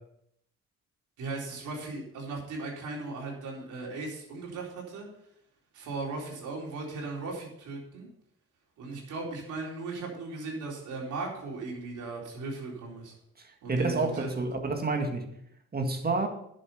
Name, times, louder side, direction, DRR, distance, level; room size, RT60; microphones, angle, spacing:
voice 1, 1.2-5.1 5.7-8.1 8.8-13.1 13.6-14.4, right 3 dB, 80° right, 4.0 m, -37 dB
voice 2, 13.7-15.3 15.7-16.3, right 3 dB, 30° right, 1.9 m, -29 dB
10.5 x 7.1 x 5.5 m
cardioid pair, 90°, 30 cm